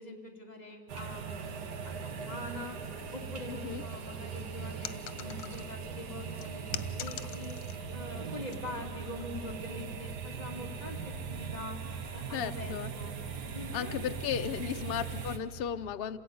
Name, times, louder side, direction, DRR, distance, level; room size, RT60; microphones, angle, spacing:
voice 1, 0.0-2.8 3.1-7.6 7.9-11.8 12.1-13.1 13.5-14.0 14.3-14.9, left 1 dB, 20° left, 0 dB, 2.9 m, -44 dB
sound 1, 0.9-15.4, right 5 dB, 70° right, 1.8 m, -40 dB
voice 2, 3.5-3.8 12.3-12.9 13.7-16.2, left 9 dB, 65° left, 9 dB, 0.5 m, -35 dB
sound 2, 4.8-5.9 6.4-7.9 8.2-8.6 9.2-9.4, left 10 dB, 90° left, 1.5 m, -43 dB
27.0 x 16.5 x 9.4 m, 2.7 s
omnidirectional pair, 1.9 m